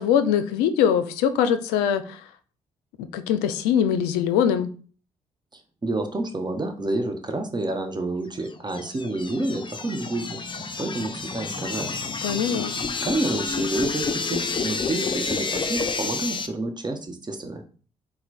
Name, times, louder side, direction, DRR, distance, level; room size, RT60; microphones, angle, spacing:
voice 1, 0.0-2.3 3.1-4.7 12.2-12.7, left 8 dB, 80° left, 0.4 m, -22 dB
voice 2, 5.5-12.1 13.0-17.6, right 2 dB, 25° right, 1.0 m, -29 dB
sound 1, 8.5-16.5, left 4 dB, 30° left, 0.6 m, -29 dB
4.4 x 2.2 x 4.1 m
hypercardioid pair, 45°, 16 cm